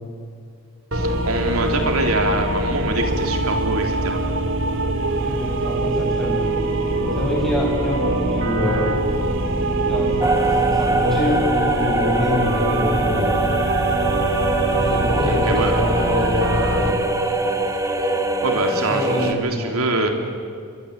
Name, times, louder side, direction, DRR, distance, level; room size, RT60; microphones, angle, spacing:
sound 1, 0.9-16.9, right 1 dB, 60° right, 2.4 m, -23 dB
voice 1, 0.9-4.2 15.2-15.8 18.4-20.1, right 2 dB, 75° right, 3 dB, 3.6 m, -24 dB
voice 2, 5.1-6.8 7.1-9.0 9.6-13.5 14.7-16.6 16.8-17.0 18.7-19.8, left 1 dB, ahead, -3 dB, 7.7 m, -26 dB
sound 2, 10.2-19.3, right 2 dB, 15° right, 1.9 m, -23 dB
28.5 x 23.0 x 8.3 m, 2.2 s
head